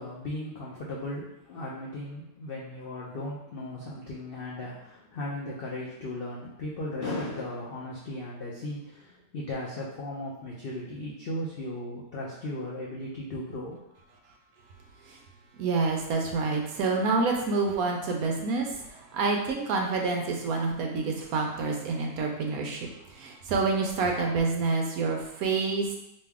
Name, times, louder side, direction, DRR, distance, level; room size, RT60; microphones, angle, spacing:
voice 1, 0.0-13.8, left 1 dB, 75° left, -4 dB, 0.5 m, -36 dB
voice 2, 15.6-25.9, right 4 dB, 75° right, 1 dB, 1.0 m, -28 dB
3.1 x 2.6 x 3.4 m, 0.84 s
omnidirectional pair, 1.7 m